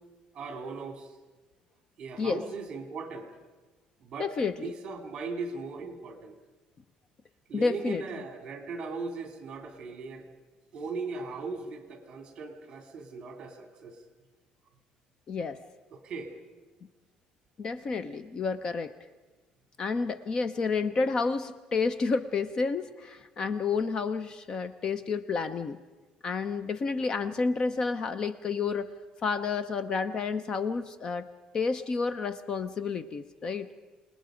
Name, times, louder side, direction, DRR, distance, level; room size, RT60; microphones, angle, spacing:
voice 1, 0.3-1.1 2.0-3.3 4.0-4.3 4.6-6.3 7.5-10.3 10.7-14.0 15.9-16.3 18.0-18.2 33.4-33.5, right 4 dB, 35° right, 5 dB, 2.8 m, -38 dB
voice 2, 4.2-4.7 7.5-8.0 15.3-15.6 17.6-18.9 19.8-25.8 26.2-28.9 29.2-31.3 31.5-33.7, left 4 dB, 30° left, 13 dB, 0.7 m, -30 dB
27.5 x 20.0 x 5.1 m, 1.3 s
cardioid pair, 160°, 2 cm